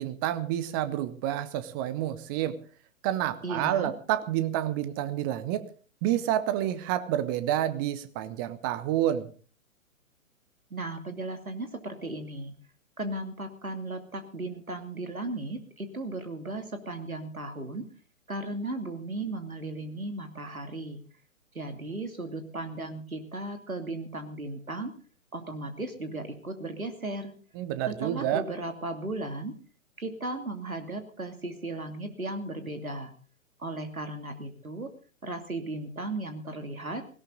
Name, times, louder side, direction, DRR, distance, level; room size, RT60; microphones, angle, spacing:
voice 1, 0.0-2.6 3.0-5.7 6.0-9.3 27.6-28.4, right 12 dB, 15° right, 13 dB, 0.6 m, -29 dB
voice 2, 3.4-3.9 10.7-12.5 13.0-17.9 18.3-21.0 21.5-24.9 25.3-27.3 27.9-29.6 30.0-33.1 33.6-34.9 35.2-37.0, right 2 dB, 80° right, 6 dB, 2.8 m, -36 dB
18.0 x 17.0 x 3.9 m, 0.41 s
figure-of-eight pair, 120°, 41 cm